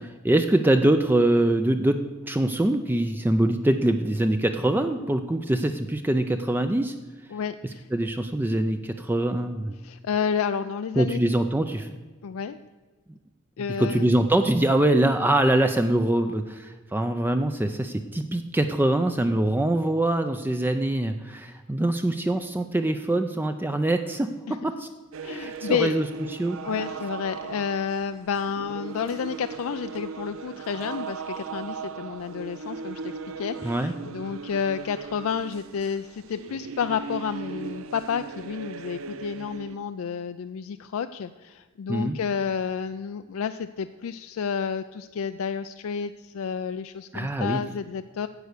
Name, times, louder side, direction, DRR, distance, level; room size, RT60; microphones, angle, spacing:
voice 1, 0.0-2.0 2.3-6.9 7.9-9.8 11.0-12.0 13.8-24.9 25.2-26.1 26.3-26.8 33.6-33.9 41.9-42.2 47.1-47.6, right 1 dB, 10° right, 7 dB, 0.4 m, -24 dB
voice 2, 7.3-7.9 9.8-11.2 12.2-12.6 13.6-14.1 24.5-24.6 25.2-26.0 26.6-48.3, left 6 dB, 75° left, 10 dB, 0.4 m, -30 dB
sound 1, 25.1-39.8, right 6 dB, 70° right, 0.5 m, -38 dB
9.7 x 7.9 x 6.5 m, 1.3 s
head